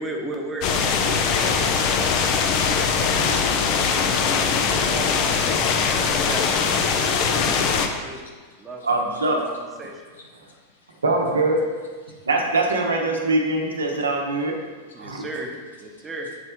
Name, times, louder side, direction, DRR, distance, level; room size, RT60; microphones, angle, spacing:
voice 1, 0.0-8.2 8.5-10.0 14.9-15.5 15.8-16.3, right 1 dB, 15° right, 0 dB, 1.0 m, -37 dB
sound 1, 0.6-7.9, left 5 dB, 40° left, 0.5 m, -21 dB
voice 2, 7.6-8.9 10.2-11.0 12.1-12.3 14.6-15.2 15.9-16.1, left 3 dB, 65° left, 0 dB, 1.1 m, -55 dB
voice 3, 8.8-9.5 11.0-11.9 12.3-14.6 15.0-15.3, right 2 dB, 70° right, 1 dB, 0.9 m, -23 dB
7.5 x 3.3 x 4.4 m, 1.5 s
figure-of-eight pair, 90°, 0 cm